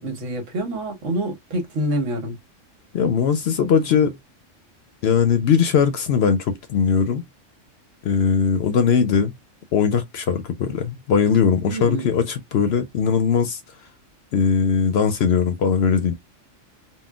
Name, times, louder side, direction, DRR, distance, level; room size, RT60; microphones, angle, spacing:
voice 1, 0.0-2.3 11.7-12.1, right 1 dB, 75° right, 1.4 m, -26 dB
voice 2, 2.9-4.2 5.0-7.2 8.0-9.3 9.7-13.6 14.3-16.1, left 6 dB, 65° left, 0.7 m, -20 dB
3.7 x 2.2 x 2.3 m
omnidirectional pair, 1.3 m